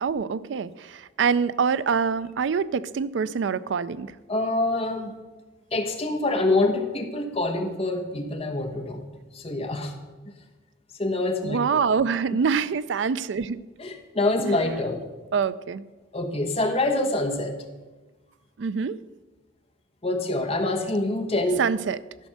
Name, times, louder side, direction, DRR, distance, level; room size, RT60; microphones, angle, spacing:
voice 1, 0.0-4.1 11.4-13.6 14.4-14.5 15.3-15.8 18.6-19.0 21.6-22.0, right 6 dB, 75° right, 16 dB, 0.4 m, -25 dB
voice 2, 4.3-5.1 5.7-9.0 9.3-9.9 11.0-11.6 13.8-15.0 16.1-17.6 20.0-21.6, left 2 dB, 35° left, 3 dB, 1.2 m, -25 dB
13.0 x 5.2 x 6.4 m, 1.2 s
head